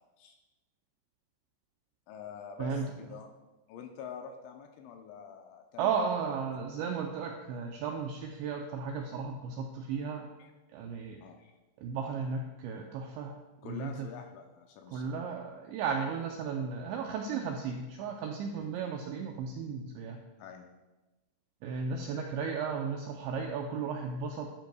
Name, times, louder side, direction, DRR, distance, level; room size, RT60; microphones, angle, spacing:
voice 1, 2.1-3.3 3.7-6.1 10.4-10.5 11.2-11.5 13.6-15.1 18.5-18.7 20.4-20.7, left 7 dB, 80° left, 3 dB, 2.8 m, -46 dB
voice 2, 5.8-10.3 10.7-11.2 11.8-13.4 13.6-14.1 14.9-20.2 21.6-24.5, right 5 dB, 90° right, 2 dB, 2.5 m, -35 dB
13.0 x 10.5 x 2.3 m, 1.1 s
omnidirectional pair, 5.9 m